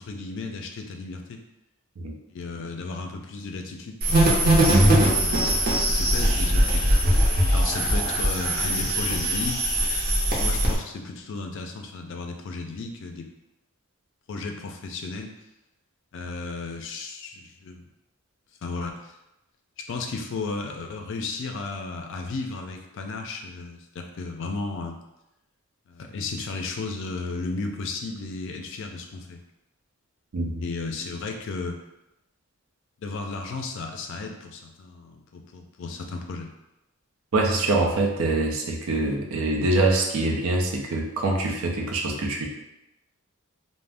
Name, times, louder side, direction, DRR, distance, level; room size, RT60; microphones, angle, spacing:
voice 1, 0.0-1.4 2.3-7.2 7.5-9.6 10.4-13.3 14.3-15.3 16.1-17.8 18.6-19.2 19.8-25.0 25.9-29.4 30.6-31.8 33.0-36.5, left 3 dB, 60° left, 4 dB, 0.4 m, -34 dB
sound 1, 4.0-10.8, right 1 dB, 45° right, 0.6 m, -21 dB
voice 2, 37.3-42.5, right 2 dB, 85° right, 1 dB, 0.5 m, -24 dB
2.5 x 2.0 x 3.3 m, 0.92 s
head